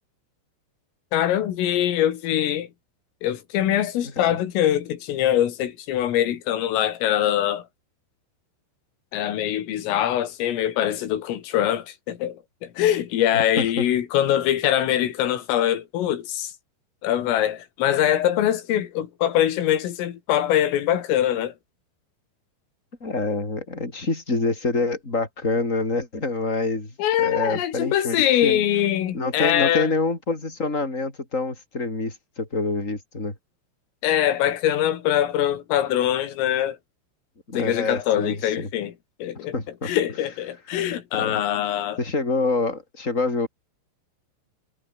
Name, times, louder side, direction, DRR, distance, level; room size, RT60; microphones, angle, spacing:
voice 1, 1.1-2.7 3.2-7.7 9.1-16.5 17.0-21.5 27.0-29.9 34.0-36.8 37.5-38.9 39.2-39.5 39.8-42.0, left 11 dB, 90° left, 5.0 m, -23 dB
voice 2, 13.3-13.7 23.0-28.6 29.1-33.3 37.5-38.7 39.5-39.9 41.1-41.4 42.0-43.5, left 3 dB, 15° left, 6.1 m, -26 dB
omnidirectional pair, 5.7 m